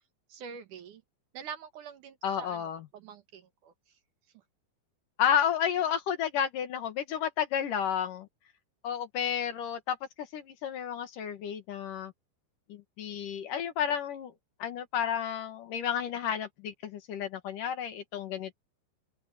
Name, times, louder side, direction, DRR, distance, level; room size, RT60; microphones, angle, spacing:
voice 1, 0.3-1.0 1.3-3.7, right 7 dB, 65° right, 2.7 m, -45 dB
voice 2, 2.2-2.9 5.2-8.3 8.8-12.1 12.7-14.3 14.6-18.5, left 9 dB, 65° left, 3.1 m, -31 dB
open air
omnidirectional pair, 4.2 m